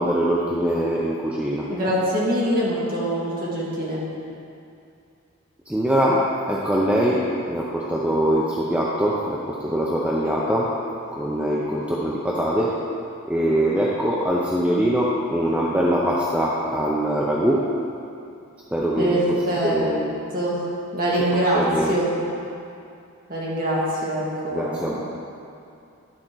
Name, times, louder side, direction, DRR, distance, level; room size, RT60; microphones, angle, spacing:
voice 1, 0.0-1.7 5.7-10.7 11.1-12.8 13.3-17.7 18.7-20.1 21.3-22.1 24.5-25.0, right 1 dB, 5° right, -5 dB, 0.6 m, -23 dB
voice 2, 1.7-4.0 19.0-19.2 19.5-19.8 20.3-20.6 20.9-21.6 21.9-22.1 23.3-25.0, right 1 dB, 40° right, -6 dB, 2.1 m, -24 dB
11.0 x 4.3 x 6.2 m, 2.6 s
head